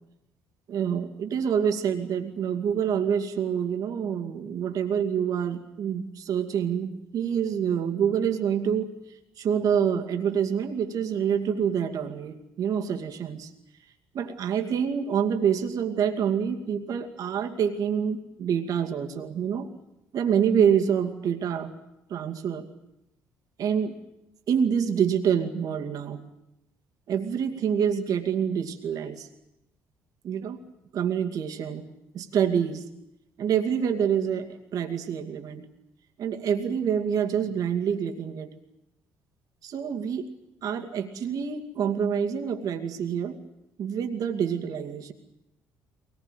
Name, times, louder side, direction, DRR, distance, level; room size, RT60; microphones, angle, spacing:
voice 1, 0.7-8.9 9.4-13.5 14.1-19.7 20.1-21.7 22.1-22.7 23.6-23.9 24.5-26.2 27.1-29.3 30.2-30.6 30.9-31.8 32.1-32.8 33.4-35.7 36.2-38.5 39.6-40.3 40.6-43.4 43.8-45.1, right 8 dB, 60° right, 5 dB, 2.4 m, -27 dB
23.5 x 19.5 x 9.3 m, 0.89 s
hypercardioid pair, 55°, 7 cm